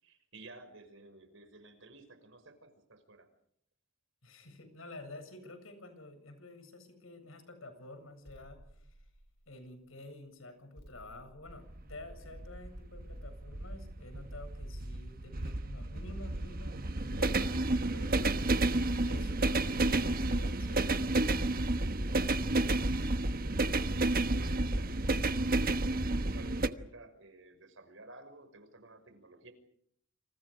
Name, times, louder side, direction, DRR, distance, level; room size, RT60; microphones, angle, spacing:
voice 1, 0.0-3.3 23.9-29.5, right 2 dB, 70° right, 9 dB, 5.9 m, -54 dB
voice 2, 4.2-9.1 9.5-21.1, left 2 dB, 80° left, 9 dB, 7.6 m, -50 dB
sound 1, 8.2-9.7 10.8-12.4 13.1-14.5 15.4-17.0 17.4-22.7, equal, 55° left, 4.3 m, -56 dB
sound 2, 11.5-26.7, right 2 dB, 45° right, 1.2 m, -31 dB
29.0 x 28.0 x 5.1 m, 0.69 s
head